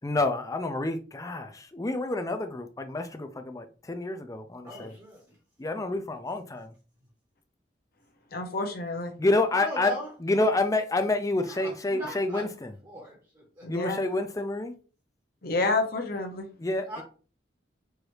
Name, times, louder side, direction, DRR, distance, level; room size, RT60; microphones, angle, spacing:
voice 1, 0.0-4.9 5.6-6.7 9.2-9.9 10.2-12.7 13.7-14.7 16.6-17.0, left 2 dB, 20° left, 0.4 m, -28 dB
voice 2, 4.6-5.4 5.7-5.9 9.5-10.1 10.5-10.6 11.4-12.5 12.8-13.7 16.9-17.0, equal, 20° right, 0.9 m, -40 dB
voice 3, 8.3-9.1 13.6-14.0 15.4-16.5, left 3 dB, 55° left, 0.8 m, -29 dB
4.7 x 2.6 x 3.1 m
head